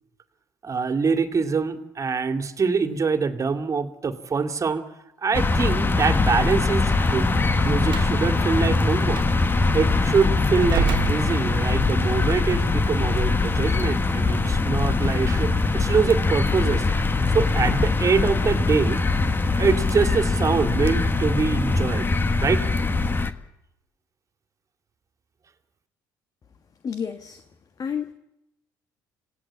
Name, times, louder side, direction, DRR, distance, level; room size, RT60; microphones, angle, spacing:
voice 1, 0.6-4.8 5.2-9.2 9.7-16.8 17.3-19.0 19.6-22.1 22.4-22.7, right 5 dB, 35° right, 8 dB, 2.4 m, -24 dB
sound 1, 5.3-23.3, left 3 dB, 20° left, 1.6 m, -22 dB
Slam, 7.8-8.2 9.1-9.3 10.6-11.9, right 9 dB, 55° right, 1.3 m, -28 dB
voice 2, 26.8-27.4 27.8-28.1, left 7 dB, 40° left, 9 dB, 1.5 m, -30 dB
26.5 x 17.0 x 8.6 m, 0.89 s
hypercardioid pair, 70°, 9 cm